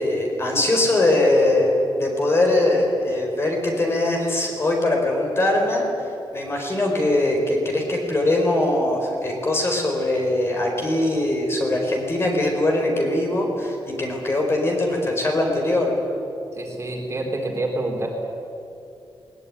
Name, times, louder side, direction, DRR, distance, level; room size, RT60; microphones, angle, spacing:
voice 1, 0.0-5.8 6.3-15.9, left 1 dB, 25° left, 1 dB, 4.4 m, -21 dB
voice 2, 16.5-18.1, right 2 dB, 30° right, 0 dB, 3.5 m, -27 dB
20.0 x 20.0 x 9.8 m, 2.7 s
wide cardioid pair, 170°, 9 cm